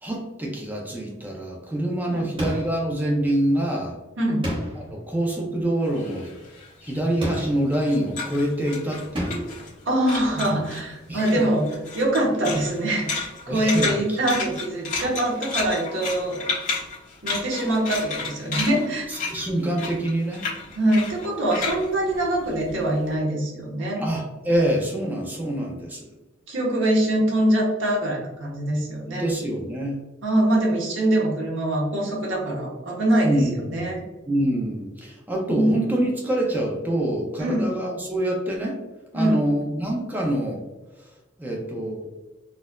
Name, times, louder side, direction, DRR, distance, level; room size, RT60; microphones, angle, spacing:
voice 1, 0.0-4.0 4.7-6.3 6.8-9.6 11.1-11.4 13.5-13.9 19.1-20.4 24.0-26.1 29.2-30.0 33.2-33.7 34.3-38.8 39.1-40.6 41.0-41.1 41.4-42.1, right 1 dB, 10° right, -1 dB, 0.5 m, -26 dB
sound 1, 2.4-2.9 4.4-5.0 7.2-7.8 9.1-9.6, equal, 25° right, 0.9 m, -30 dB
sound 2, 5.9-9.8 10.1-10.8 11.2-23.0, left 4 dB, 40° left, 1.3 m, -32 dB
voice 2, 9.8-11.7 11.9-16.4 17.2-19.1 20.8-24.0 26.5-29.2 30.2-34.0 35.5-35.7 37.4-37.7 39.1-39.5, right 1 dB, 85° right, -3 dB, 1.1 m, -23 dB
4.1 x 2.5 x 2.2 m, 1.1 s
head